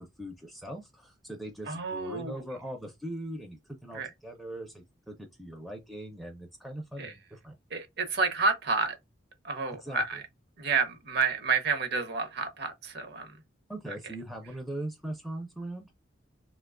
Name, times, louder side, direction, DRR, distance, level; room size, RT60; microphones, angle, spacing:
voice 1, 0.2-7.5 9.8-10.2 13.7-15.9, right 1 dB, ahead, 0.5 m, -40 dB
voice 2, 1.7-2.4 3.9-4.1 7.0-7.1 7.7-9.0 9.4-10.2 10.6-13.4 13.9-14.0, right 4 dB, 60° right, 0.9 m, -30 dB
2.8 x 2.2 x 3.6 m
head